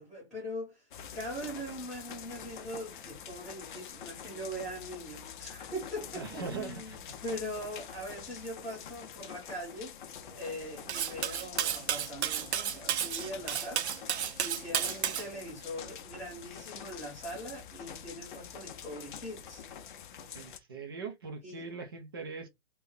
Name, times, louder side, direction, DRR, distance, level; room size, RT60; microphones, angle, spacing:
voice 1, 0.0-10.0 10.3-19.6 21.4-21.6, equal, ahead, 1.0 m, -41 dB
sound 1, 0.9-20.6, left 8 dB, 45° left, 0.6 m, -46 dB
voice 2, 6.1-7.2 14.7-14.8 20.3-22.5, right 4 dB, 20° right, 0.4 m, -41 dB
Cutlery silverware, 10.9-15.3, right 9 dB, 70° right, 0.6 m, -32 dB
3.5 x 2.2 x 3.4 m
hypercardioid pair, 160°, 34 cm